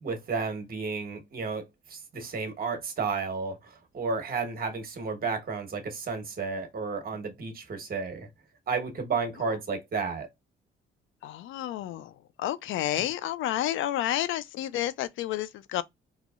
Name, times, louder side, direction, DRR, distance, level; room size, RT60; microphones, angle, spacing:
voice 1, 0.0-8.3 8.7-10.3 13.0-13.1, right 4 dB, 50° right, 1.2 m, -32 dB
voice 2, 11.2-12.1 12.4-15.8, left 13 dB, 80° left, 0.4 m, -30 dB
3.8 x 2.8 x 2.4 m
cardioid pair, 90°, 20 cm